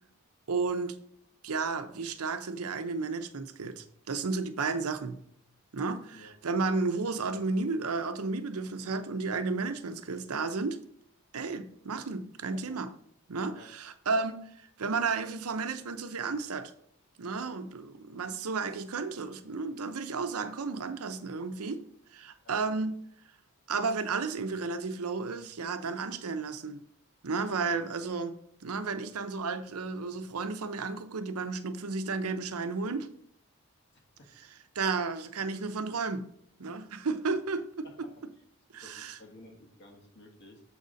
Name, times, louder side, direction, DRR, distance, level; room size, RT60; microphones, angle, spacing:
voice 1, 0.5-1.0 1.4-5.2 5.7-10.8 11.3-12.9 13.3-16.7 17.2-21.8 22.1-23.0 23.7-26.8 27.2-28.4 28.6-33.1 34.7-36.2 36.6-38.1 38.7-39.2, right 4 dB, 85° right, 0.7 m, -33 dB
voice 2, 33.9-34.5 37.2-37.3 37.8-38.2 38.7-40.6, left 1 dB, 50° left, 1.5 m, -54 dB
7.1 x 4.1 x 5.1 m
head